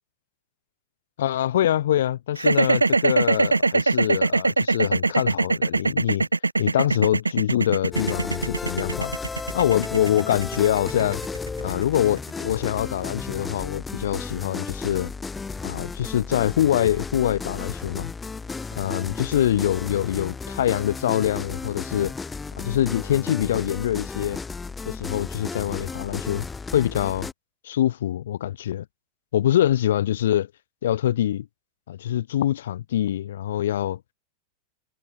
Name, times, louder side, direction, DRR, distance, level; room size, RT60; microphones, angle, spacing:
voice 1, 1.2-6.3 6.6-9.1 9.5-11.2 11.6-15.1 15.6-18.1 18.7-22.1 22.6-24.4 24.9-26.5 26.7-27.3 27.6-28.8 29.3-30.5 30.8-31.5 31.9-34.0, left 11 dB, 60° left, 1.5 m, -24 dB
sound 1, 2.4-12.5, right 3 dB, 80° right, 0.3 m, -22 dB
sound 2, 7.9-27.3, left 4 dB, 15° left, 1.2 m, -34 dB
figure-of-eight pair, 90°, 0 cm